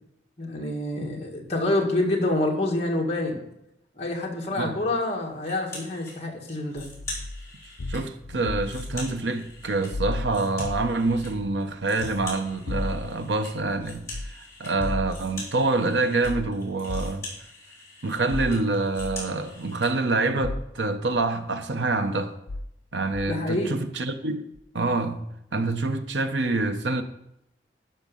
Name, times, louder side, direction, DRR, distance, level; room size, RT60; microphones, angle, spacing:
voice 1, 0.4-3.4 3.9-6.9 23.3-23.8, left 2 dB, 35° left, 1.8 m, -27 dB
sound 1, 5.4-6.1 6.5-8.0 8.4-11.3 11.6-19.9, left 2 dB, 15° left, 4.0 m, -43 dB
sound 2, 6.9-9.2 9.4-11.5 11.8-13.2 13.6-14.3 14.6-15.3 16.2-16.5 16.9-17.1 18.3-19.2 20.4-20.6 21.1-21.2 22.5-22.7 23.1-23.3 24.6-24.7, left 2 dB, 85° left, 0.5 m, -34 dB
voice 2, 7.9-17.3 18.0-22.3 22.9-24.5 24.7-25.3 25.5-27.0, right 3 dB, 85° right, 0.9 m, -26 dB
12.0 x 5.4 x 5.4 m
head